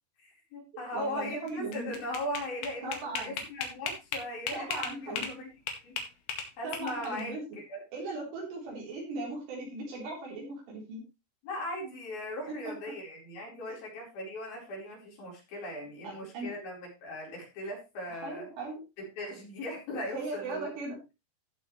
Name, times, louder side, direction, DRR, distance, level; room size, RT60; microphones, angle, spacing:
voice 1, 0.2-5.5 5.8-6.0 6.6-7.8 11.4-18.5 19.0-20.7, left 1 dB, 55° left, -2 dB, 6.1 m, -39 dB
voice 2, 0.9-2.0 2.8-3.4 4.5-5.3 6.6-7.4 7.9-11.0 16.0-16.5 18.2-18.8 20.1-21.0, right 3 dB, 65° right, -2 dB, 5.9 m, -38 dB
sound 1, 1.5-5.4 5.7-7.2, left 5 dB, 70° left, 3.9 m, -36 dB
15.5 x 7.0 x 3.2 m, 0.26 s
omnidirectional pair, 5.2 m